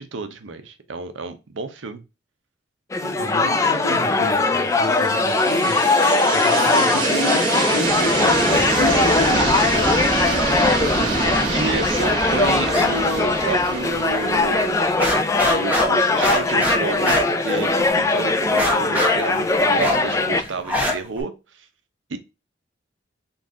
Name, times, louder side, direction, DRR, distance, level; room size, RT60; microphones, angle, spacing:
voice 1, 0.0-2.0 9.3-9.6 11.2-14.9 15.5-21.6 22.1-22.2, right 4 dB, 75° right, 0.6 m, -30 dB
sound 1, 2.9-20.4, left 3 dB, 15° left, 0.3 m, -20 dB
voice 2, 3.0-5.8 6.3-10.0 10.6-11.5, left 1 dB, 85° left, 1.1 m, -30 dB
sound 2, 4.7-15.8, right 3 dB, 25° right, 1.1 m, -25 dB
sound 3, 12.6-12.9 13.2-14.0 14.3-14.4 14.7-18.0 18.4-21.2, left 1 dB, 5° right, 0.8 m, -24 dB
3.9 x 2.4 x 3.7 m
head